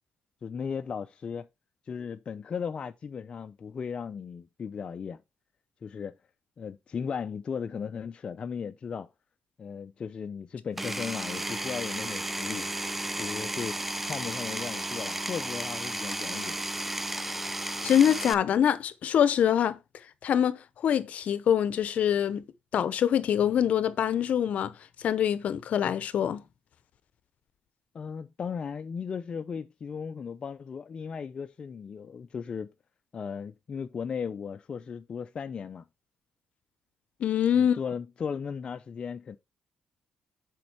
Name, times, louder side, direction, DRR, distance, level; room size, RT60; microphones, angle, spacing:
voice 1, 0.4-1.5 1.9-5.2 5.8-6.1 6.6-9.1 9.6-12.7 13.2-13.8 14.1-16.5 27.9-32.7 33.1-35.8 37.5-39.4, left 6 dB, 40° left, 0.6 m, -36 dB
Power tool, 10.8-18.3, right 1 dB, 10° right, 0.5 m, -33 dB
voice 2, 17.8-19.8 20.2-22.4 22.7-24.7 25.0-26.4 37.2-37.8, left 9 dB, 60° left, 0.9 m, -24 dB
7.7 x 5.2 x 4.9 m
cardioid pair, 130°, 3 cm